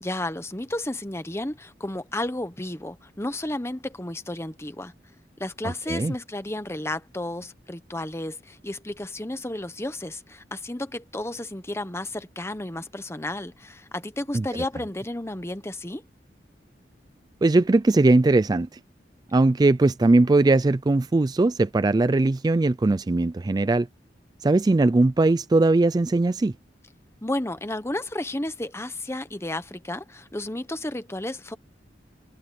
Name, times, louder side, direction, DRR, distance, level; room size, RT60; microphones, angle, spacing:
voice 1, 0.0-4.9 5.4-16.0 27.2-31.6, left 1 dB, 15° left, 1.2 m, -32 dB
voice 2, 5.6-6.1 14.3-14.5 17.4-18.8 19.3-23.9 24.4-26.5, right 2 dB, 20° right, 0.3 m, -20 dB
head